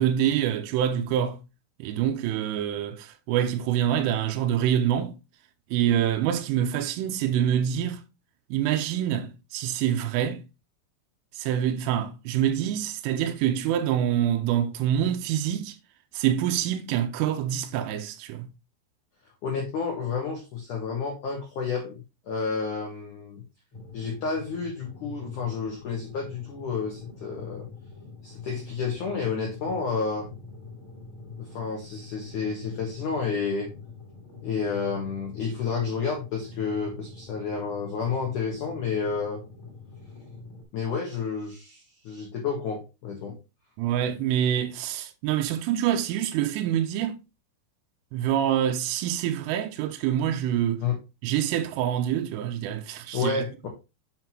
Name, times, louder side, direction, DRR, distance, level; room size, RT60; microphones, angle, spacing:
voice 1, 0.0-1.4 1.8-5.1 5.7-8.0 8.5-10.4 11.3-15.8 16.1-18.5 43.8-47.2 48.1-50.8 51.2-53.5, right 10 dB, 80° right, 3.2 m, -26 dB
voice 2, 19.4-23.4 23.9-27.7 28.2-30.3 31.4-33.7 34.4-39.4 40.7-43.3 50.8-51.0 53.1-53.7, left 5 dB, 80° left, 1.7 m, -30 dB
sound 1, 23.7-40.6, left 3 dB, 45° left, 1.8 m, -45 dB
7.8 x 5.8 x 3.0 m
omnidirectional pair, 6.0 m